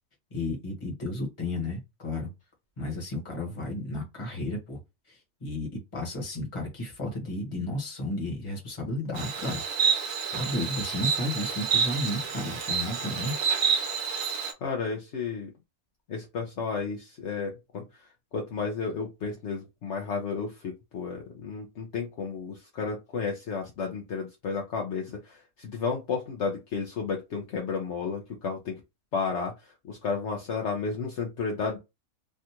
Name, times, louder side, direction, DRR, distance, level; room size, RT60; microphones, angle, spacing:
voice 1, 0.3-2.3 2.8-4.8 5.1-9.6 10.3-13.3, left 1 dB, 25° left, 1.2 m, -33 dB
Insect, 9.2-14.5, right 6 dB, 75° right, 1.1 m, -28 dB
voice 2, 14.6-15.5 16.1-17.8 18.3-28.8 29.1-31.8, left 5 dB, 60° left, 0.9 m, -32 dB
3.4 x 2.4 x 2.8 m
omnidirectional pair, 1.4 m